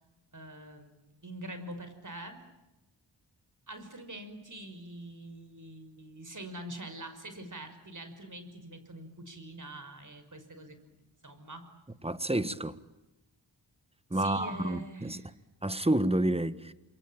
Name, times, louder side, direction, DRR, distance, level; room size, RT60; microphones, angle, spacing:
voice 1, 0.3-2.4 3.7-11.7 14.1-15.3, right 1 dB, 40° right, 5.8 m, -45 dB
voice 2, 12.0-12.8 14.1-15.2 15.6-16.7, right 1 dB, 15° right, 1.6 m, -29 dB
28.5 x 22.0 x 9.0 m
cardioid pair, 40°, 45 cm